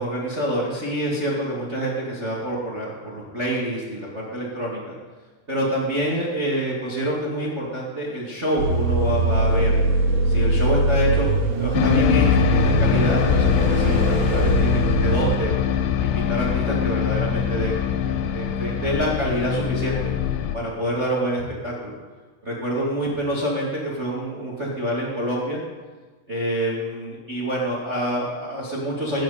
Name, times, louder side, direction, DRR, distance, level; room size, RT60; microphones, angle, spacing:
voice 1, 0.0-4.9 5.5-9.7 10.2-11.3 11.5-15.5 16.0-20.1 20.5-21.9 22.4-25.6 26.3-29.2, equal, 30° right, -4 dB, 1.2 m, -27 dB
sound 1, 8.6-15.4, right 2 dB, 65° right, 3.8 m, -22 dB
sound 2, 11.7-20.6, left 9 dB, 90° left, 3.4 m, -22 dB
21.5 x 10.0 x 4.3 m, 1.3 s
omnidirectional pair, 5.4 m